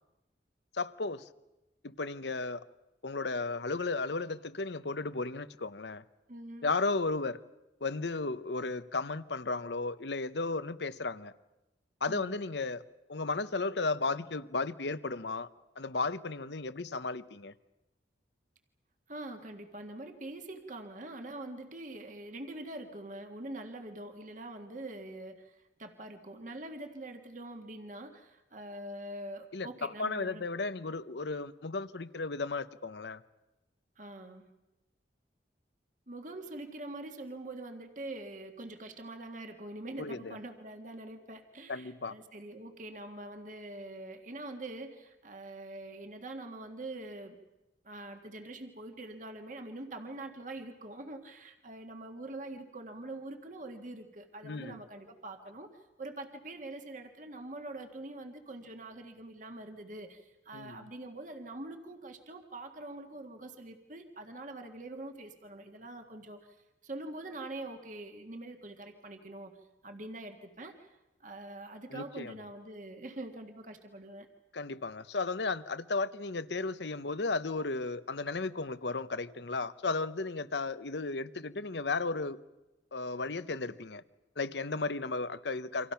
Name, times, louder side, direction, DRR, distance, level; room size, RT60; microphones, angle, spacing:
voice 1, 0.7-1.3 1.8-2.6 3.0-6.0 6.6-7.4 7.8-11.3 12.0-12.8 13.1-15.5 15.8-17.5 29.5-33.2 40.0-40.4 41.7-42.1 54.4-54.8 60.5-60.8 71.9-72.4 74.5-82.4 82.9-84.0 84.4-85.9, left 3 dB, 70° left, 0.9 m, -34 dB
voice 2, 6.3-6.7 12.1-12.4 19.1-30.5 34.0-34.5 36.1-47.4 47.8-66.4 66.8-70.9 71.2-74.3, right 2 dB, 45° right, 1.8 m, -44 dB
29.0 x 25.5 x 5.8 m
head